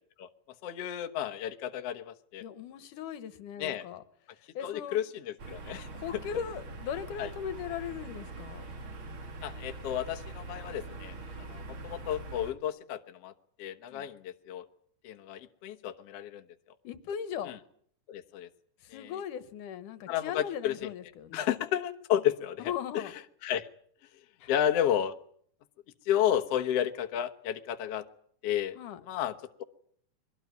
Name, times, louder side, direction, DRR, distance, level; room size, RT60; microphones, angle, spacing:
voice 1, 0.6-2.4 3.6-3.9 4.6-5.9 7.2-7.3 9.4-13.3 13.6-14.7 15.0-16.4 18.1-18.5 18.9-19.1 20.1-20.9 21.3-23.0 23.4-23.7 24.5-25.2 26.1-28.1 28.4-28.8 29.0-29.6, left 10 dB, 60° left, 6 dB, 2.0 m, -32 dB
voice 2, 2.4-4.0 4.5-5.0 5.9-8.7 13.9-14.1 16.8-17.6 18.8-21.4 22.6-23.1 24.4-24.5 28.8-29.0, left 8 dB, 75° left, 13 dB, 2.7 m, -38 dB
sound 1, 5.4-12.5, right 2 dB, 45° right, 2.7 m, -43 dB
23.5 x 17.5 x 9.4 m, 0.63 s
omnidirectional pair, 3.7 m